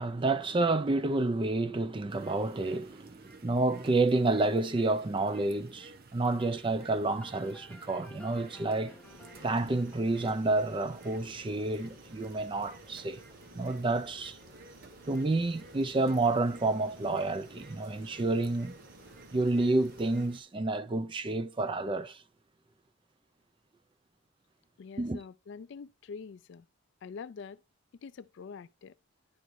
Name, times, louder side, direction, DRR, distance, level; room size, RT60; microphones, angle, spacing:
voice 1, 0.0-9.0 9.4-13.2 13.5-14.4 15.1-18.8 19.3-22.2 25.0-25.2, right 2 dB, 25° right, 0.4 m, -29 dB
sound 1, 2.1-20.4, right 3 dB, 45° right, 0.8 m, -54 dB
sound 2, 7.2-11.8, left 1 dB, 5° left, 1.0 m, -55 dB
sound 3, 9.0-20.3, equal, 90° right, 4.2 m, -55 dB
voice 2, 24.8-26.7 27.0-27.6 28.0-28.9, left 5 dB, 55° left, 0.3 m, -45 dB
10.0 x 4.6 x 2.6 m
head